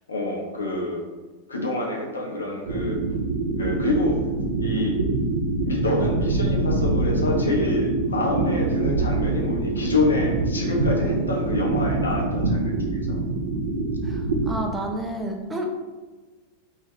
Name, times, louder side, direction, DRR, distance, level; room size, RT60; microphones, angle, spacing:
voice 1, 0.1-1.0 1.5-3.0 3.6-4.2 4.6-4.9 5.6-13.2, left 2 dB, 75° left, 0 dB, 0.6 m, -27 dB
sound 1, 2.7-14.5, right 3 dB, 70° right, 0.6 m, -25 dB
voice 2, 14.0-15.6, right 1 dB, 10° right, 1 dB, 0.4 m, -30 dB
2.6 x 2.4 x 3.1 m, 1.3 s
figure-of-eight pair, 90°, 0 cm